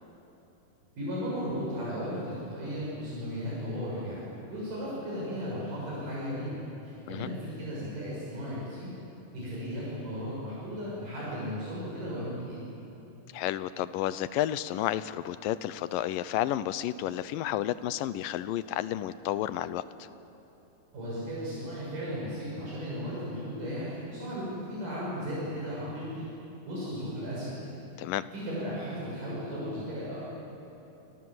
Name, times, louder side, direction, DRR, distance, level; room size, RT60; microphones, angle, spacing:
voice 1, 1.0-8.9 9.3-12.6 20.9-26.3 26.7-27.7 28.3-30.3, equal, 65° right, -7 dB, 8.4 m, -35 dB
voice 2, 13.3-20.1 28.0-28.3, left 13 dB, 80° left, 14 dB, 2.5 m, -31 dB
29.0 x 25.5 x 8.0 m, 3.0 s
omnidirectional pair, 4.0 m